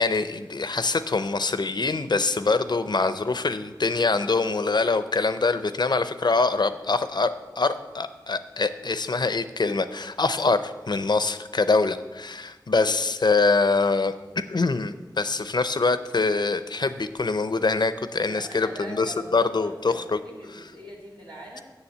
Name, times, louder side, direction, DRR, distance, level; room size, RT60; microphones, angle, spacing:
voice 1, 0.0-14.1 14.5-20.2 20.5-20.6, left 3 dB, 65° left, 11 dB, 0.5 m, -24 dB
voice 2, 18.2-21.6, right 1 dB, 90° right, -4 dB, 2.9 m, -42 dB
7.1 x 6.9 x 7.9 m, 1.2 s
wide cardioid pair, 65°, 8 cm